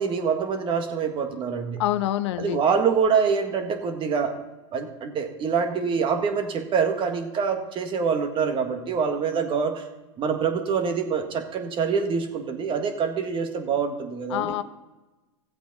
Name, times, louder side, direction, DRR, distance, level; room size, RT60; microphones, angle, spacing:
voice 1, 0.0-1.8 2.4-4.3 4.7-9.8 10.2-14.5, right 6 dB, 35° right, 6 dB, 1.6 m, -25 dB
voice 2, 1.8-2.6 14.3-14.6, left 13 dB, 70° left, 13 dB, 0.6 m, -26 dB
15.0 x 8.0 x 4.1 m, 1.1 s
hypercardioid pair, 110°, 15 cm